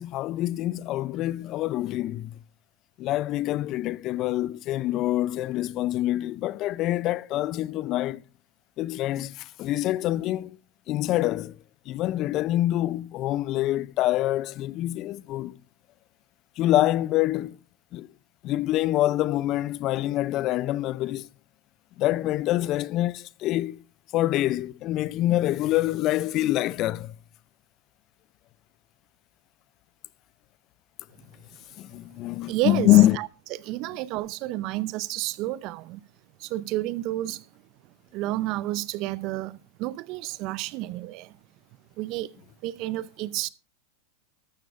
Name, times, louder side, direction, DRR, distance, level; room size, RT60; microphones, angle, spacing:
voice 1, 0.0-2.4 3.0-8.2 8.8-10.6 10.9-11.6 11.9-15.6 16.6-17.6 17.9-18.1 18.4-21.3 22.0-23.8 24.1-27.1 31.8-33.2, left 15 dB, 45° left, 0.5 m, -25 dB
voice 2, 32.5-33.3 33.6-36.0 36.4-37.4 38.1-41.3 42.0-42.3 42.6-43.5, right 16 dB, 50° right, 0.6 m, -30 dB
14.0 x 12.5 x 2.5 m
hypercardioid pair, 100°, 0 cm